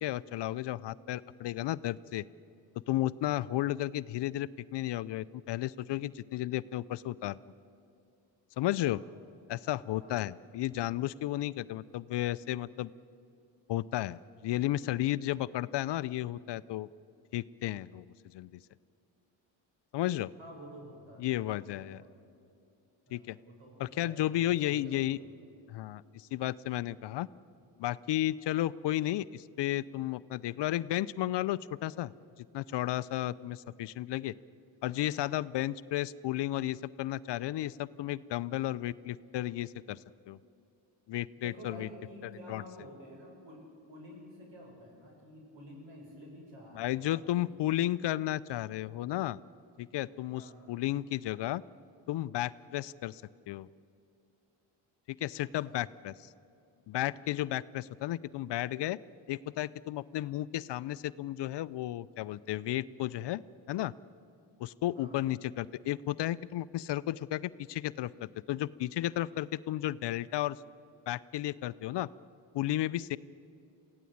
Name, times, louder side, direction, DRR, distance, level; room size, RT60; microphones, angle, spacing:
voice 1, 0.0-2.2 2.9-7.4 8.6-9.0 9.5-12.9 13.7-16.9 17.3-18.0 18.3-18.6 19.9-20.3 21.2-22.0 23.1-23.4 23.8-25.2 25.7-27.3 27.8-32.1 32.5-34.3 34.8-40.0 40.3-40.4 41.1-41.9 42.5-42.6 46.8-49.4 49.8-51.6 52.1-53.2 53.5-53.7 55.1-56.3 56.9-59.0 59.3-63.4 63.7-63.9 64.6-70.6 71.1-72.1 72.5-73.2, left 14 dB, 55° left, 17 dB, 0.6 m, -33 dB
voice 2, 10.0-10.3 16.4-16.5 20.4-22.2 23.1-25.2 41.4-47.8 50.4-50.6 55.6-55.8 64.9-65.2, equal, 60° right, 0 dB, 7.7 m, -51 dB
23.0 x 16.0 x 8.6 m, 2.6 s
supercardioid pair, 65°, 49 cm